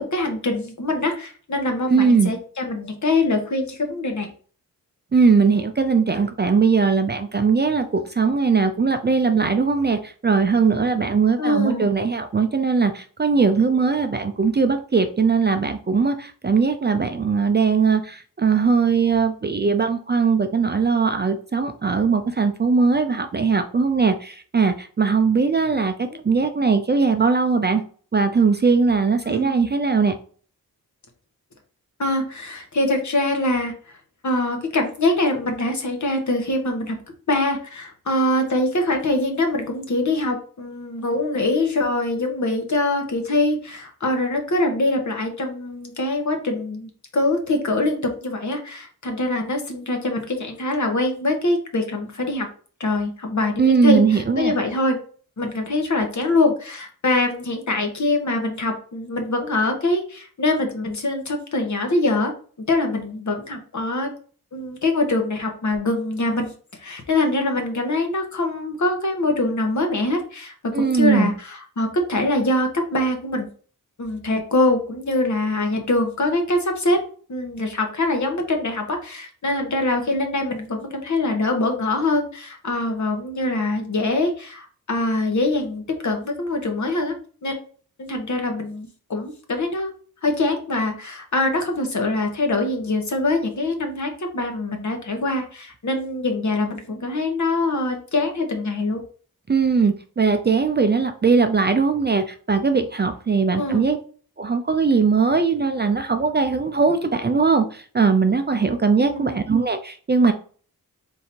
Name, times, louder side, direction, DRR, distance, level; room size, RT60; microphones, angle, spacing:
voice 1, 0.0-4.3 11.4-11.9 26.1-26.2 29.2-29.6 32.0-33.7 34.2-37.0 37.3-52.5 52.8-55.0 55.4-62.3 62.6-64.1 64.5-66.5 66.8-73.5 74.0-77.0 77.3-87.2 87.4-87.6 88.0-89.9 90.2-99.0 103.6-103.9 109.0-109.4, left 2 dB, 50° left, 4 dB, 1.1 m, -23 dB
voice 2, 1.9-2.3 5.1-25.9 26.2-27.8 28.1-30.1 53.6-54.5 70.7-71.3 99.5-104.0 104.4-110.3, right 5 dB, 30° right, 7 dB, 0.5 m, -20 dB
3.8 x 2.7 x 4.3 m, 0.43 s
cardioid pair, 70°, 36 cm